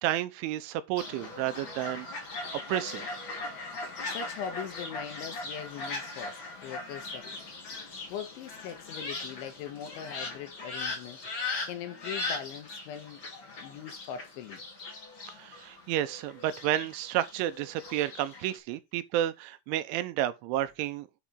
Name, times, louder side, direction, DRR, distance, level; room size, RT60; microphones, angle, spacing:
voice 1, 0.0-2.3 2.7-3.2 15.4-21.1, right 13 dB, 85° right, 3.1 m, -31 dB
Fowl, 1.0-18.6, left 3 dB, 35° left, 2.1 m, -39 dB
voice 2, 4.1-7.5 7.8-13.2 13.6-14.6, left 9 dB, 80° left, 3.6 m, -41 dB
8.4 x 5.1 x 5.2 m
omnidirectional pair, 5.4 m